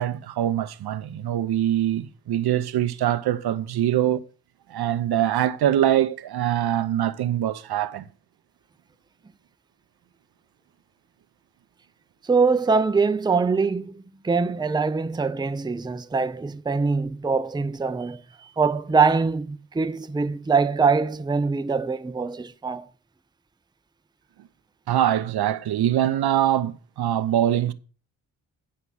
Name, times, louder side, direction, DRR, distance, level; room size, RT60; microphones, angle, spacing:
voice 1, 0.0-4.2 4.7-8.1 24.9-27.7, right 11 dB, 60° right, 0.8 m, -23 dB
voice 2, 12.2-18.2 18.6-22.9, right 4 dB, 10° right, 0.6 m, -23 dB
10.0 x 5.6 x 6.3 m
hypercardioid pair, 40°, 44 cm